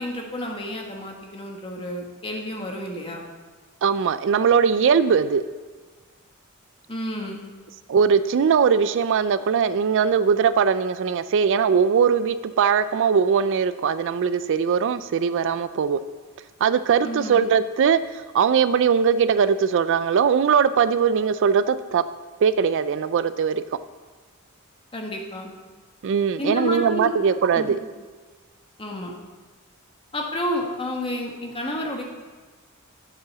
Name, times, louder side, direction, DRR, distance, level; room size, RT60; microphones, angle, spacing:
voice 1, 0.0-3.2 6.9-7.4 17.0-17.4 24.9-25.5 26.4-27.1 27.5-27.7 28.8-29.1 30.1-32.0, left 1 dB, 25° left, 1 dB, 1.4 m, -30 dB
voice 2, 3.8-5.4 7.9-16.0 16.6-22.0 22.4-23.6 26.0-27.8, right 6 dB, 60° right, 14 dB, 0.4 m, -20 dB
7.7 x 7.5 x 6.8 m, 1.4 s
head